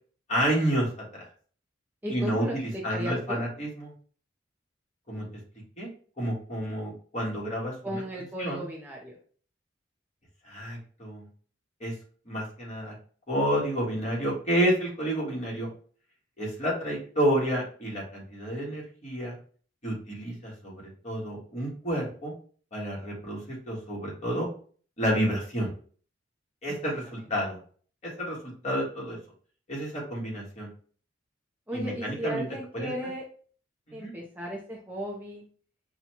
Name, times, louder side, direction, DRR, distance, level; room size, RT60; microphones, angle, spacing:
voice 1, 0.3-1.2 2.1-3.9 5.1-5.2 5.8-5.9 6.2-8.0 8.4-8.6 10.5-11.2 11.8-11.9 12.3-12.9 13.3-15.7 16.4-19.3 19.8-22.3 22.7-24.5 25.0-25.7 26.6-27.6 28.0-28.4 28.6-29.2 29.7-30.7 31.7-32.4 32.7-32.9 33.9-34.1, equal, 40° left, -4 dB, 1.6 m, -30 dB
voice 2, 2.0-3.4 7.8-9.2 26.7-26.9 31.7-33.2 33.9-35.4, equal, 10° right, -2 dB, 0.6 m, -36 dB
5.4 x 2.3 x 2.9 m, 0.43 s
head